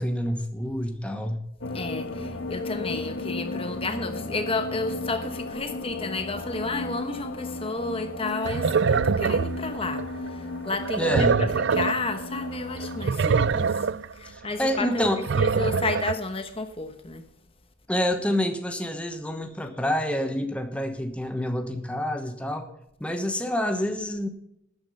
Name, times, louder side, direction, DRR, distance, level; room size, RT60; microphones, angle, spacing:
voice 1, 0.0-1.4 11.0-11.3 14.2-15.2 17.9-22.7 23.0-24.3, equal, 5° left, 1.1 m, -27 dB
sound 1, 1.6-13.0, left 2 dB, 65° left, 1.3 m, -35 dB
voice 2, 1.7-11.1 11.4-13.9 14.1-15.0 15.4-17.2, left 3 dB, 25° left, 1.1 m, -32 dB
sound 2, 8.2-10.2 10.7-12.2 12.4-12.5 12.8-14.1 14.6-16.1, right 5 dB, 55° right, 0.4 m, -24 dB
12.5 x 9.6 x 5.4 m
head